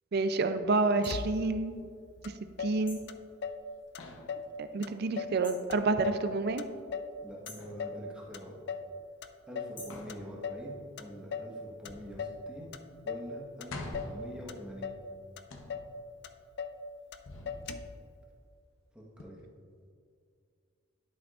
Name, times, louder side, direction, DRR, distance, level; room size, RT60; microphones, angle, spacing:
voice 1, 0.1-1.8 2.6-3.0 4.6-6.6, right 3 dB, 50° right, 9 dB, 0.4 m, -29 dB
sound 1, 1.0-1.2 2.9-3.1 5.4-5.7 7.4-7.7 9.7-10.1, left 3 dB, 25° left, 1.1 m, -49 dB
Motor vehicle (road), 1.1-1.7 2.2-2.3 2.6-3.7 3.9-4.5 4.8-5.4 5.7-7.2 7.5-8.1 8.3-8.9 9.2-9.8 10.1-10.7 11.0-11.6 11.9-12.4 12.7-13.3 13.6-14.2 14.5-15.1 15.4-15.5 15.7-15.9 16.2-16.8 17.1-17.2 17.5-18.0, left 6 dB, 55° left, 0.4 m, -39 dB
sound 2, 2.1-3.6 4.0-4.5 5.8-6.2 7.6-7.9 9.9-10.8 11.8-12.9 13.2-13.3 13.7-15.1 15.5-16.3 17.3-18.6 19.2-19.3, left 2 dB, 70° left, 0.8 m, -48 dB
voice 2, 7.2-8.5 9.5-12.7 13.0-14.9 18.9-19.4, equal, 5° right, -5 dB, 1.2 m, -45 dB
11.0 x 5.9 x 2.4 m, 2.3 s
head